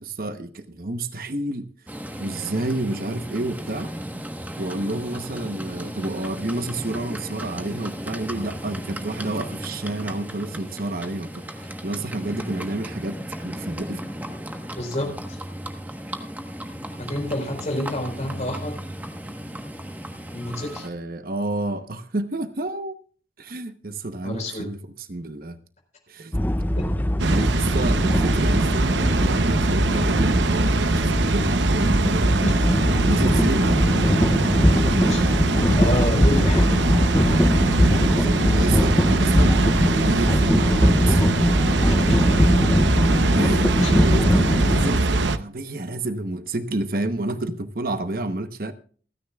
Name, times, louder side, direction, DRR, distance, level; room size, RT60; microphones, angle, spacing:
voice 1, 0.0-1.7 2.2-3.9 4.6-14.0 20.8-23.0 23.4-25.6 26.1-26.3 27.3-32.3 33.0-33.9 38.1-39.6 39.9-41.3 43.3-48.7, right 2 dB, 50° right, 0.9 m, -29 dB
Livestock farm animals working animals, 1.9-20.9, equal, 10° right, 1.2 m, -35 dB
voice 2, 14.8-15.4 17.0-18.8 20.3-20.9 24.2-24.7 26.8-27.1 32.4-32.7 35.1-35.2 35.8-36.7 41.8-42.4 43.8-43.9, left 1 dB, 40° left, 4.4 m, -29 dB
sound 1, 26.3-45.0, left 1 dB, 10° left, 0.5 m, -21 dB
Water, 27.2-45.4, right 2 dB, 80° right, 0.8 m, -22 dB
28.0 x 10.0 x 2.3 m
head